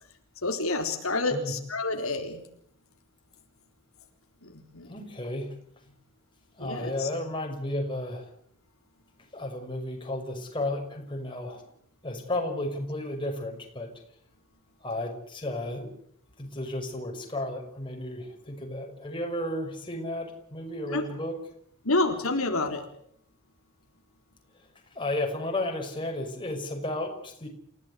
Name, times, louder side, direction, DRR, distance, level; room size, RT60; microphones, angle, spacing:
voice 1, 0.4-2.4 4.4-5.0 6.6-7.1 20.9-21.0 21.8-22.8, left 2 dB, 80° left, 3 dB, 3.8 m, -28 dB
voice 2, 4.9-5.5 6.6-8.3 9.3-11.7 12.0-13.9 14.8-15.9 16.4-21.3 24.9-27.5, left 1 dB, 25° left, 2 dB, 5.9 m, -33 dB
29.0 x 16.5 x 8.3 m, 0.66 s
head